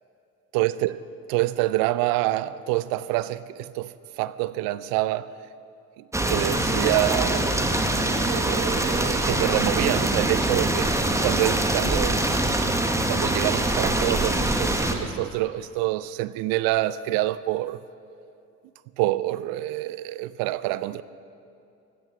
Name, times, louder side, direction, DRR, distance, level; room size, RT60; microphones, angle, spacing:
voice 1, 0.5-1.0 1.3-5.3 6.0-7.5 8.1-10.9 11.2-12.2 13.1-17.8 19.0-21.0, right 16 dB, 55° right, 0.6 m, -26 dB
sound 1, 6.1-14.9, right 1 dB, 5° right, 1.4 m, -24 dB
16.0 x 13.5 x 5.7 m
figure-of-eight pair, 55°, 43 cm